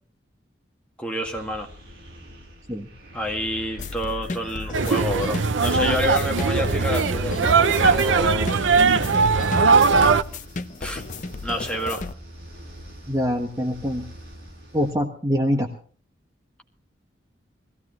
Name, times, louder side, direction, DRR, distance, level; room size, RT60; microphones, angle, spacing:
voice 1, 1.0-1.7 3.1-7.4 7.8-8.5 10.8-11.0 11.4-12.1, left 1 dB, 5° left, 1 dB, 2.0 m, -28 dB
sound 1, 1.2-14.9, equal, 55° right, 7.2 m, -45 dB
sound 2, 3.8-12.1, left 3 dB, 40° left, 0.7 m, -34 dB
sound 3, 4.7-10.2, right 4 dB, 80° right, 0.6 m, -19 dB
voice 2, 13.1-14.1 14.7-15.7, equal, 20° right, 3 dB, 1.3 m, -24 dB
21.0 x 16.0 x 3.1 m, 0.43 s
head